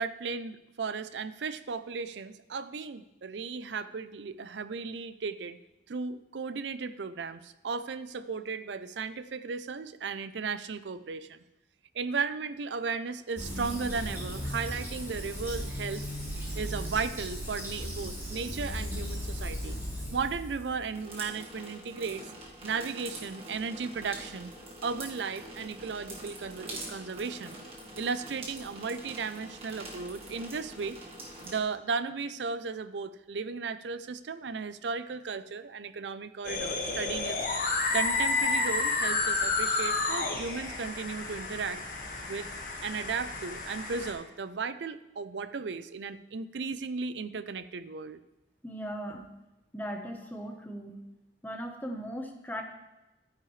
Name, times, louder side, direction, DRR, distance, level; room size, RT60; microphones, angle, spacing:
voice 1, 0.0-5.6 5.9-11.4 11.9-16.1 16.6-19.8 20.1-22.3 22.6-24.5 24.8-27.6 28.0-31.0 31.4-37.4 37.9-41.8 42.3-42.5 42.8-48.2, right 5 dB, 80° right, 14 dB, 0.5 m, -35 dB
Fill (with liquid), 13.4-21.0, equal, 15° right, 3.6 m, -36 dB
sound 1, 20.9-31.6, right 1 dB, 30° right, 1.7 m, -44 dB
sound 2, 36.4-44.1, left 3 dB, 45° left, 1.7 m, -31 dB
voice 2, 48.6-49.3 49.7-51.0 51.4-52.6, equal, 10° left, 3 dB, 1.0 m, -38 dB
12.5 x 9.7 x 3.2 m, 1.0 s
head